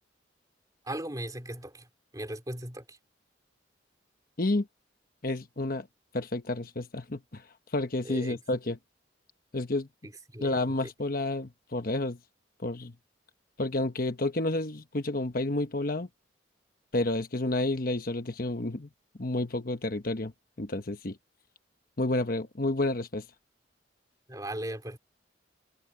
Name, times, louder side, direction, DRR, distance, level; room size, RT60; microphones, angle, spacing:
voice 1, 0.9-1.9 2.1-3.0 8.0-8.4 10.3-10.9 24.3-25.0, right 1 dB, 20° right, 3.3 m, -38 dB
voice 2, 5.2-5.9 6.1-7.4 7.7-8.8 9.5-9.9 10.4-12.2 12.6-12.9 13.6-16.1 16.9-18.9 19.2-20.3 20.6-21.2 22.0-23.2, left 2 dB, 50° left, 1.1 m, -30 dB
head